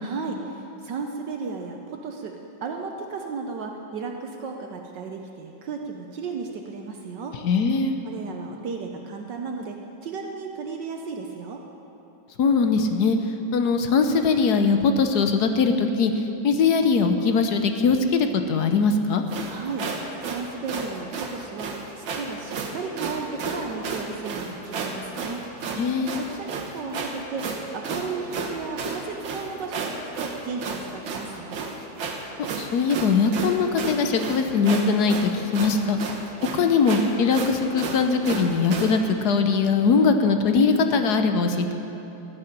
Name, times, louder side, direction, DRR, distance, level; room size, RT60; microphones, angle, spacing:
voice 1, 0.0-2.4 2.6-7.4 8.0-11.6 19.5-20.0 20.3-25.4 26.1-27.5 27.7-31.7, right 4 dB, 70° right, 2 dB, 1.5 m, -34 dB
voice 2, 7.4-7.9 12.4-13.2 13.5-16.1 16.4-19.2 25.8-26.1 32.6-36.0 36.5-41.7, left 4 dB, 65° left, 7 dB, 1.2 m, -21 dB
sound 1, 19.3-39.0, right 4 dB, 85° right, 2.0 m, -32 dB
15.0 x 6.8 x 10.0 m, 3.0 s
omnidirectional pair, 2.1 m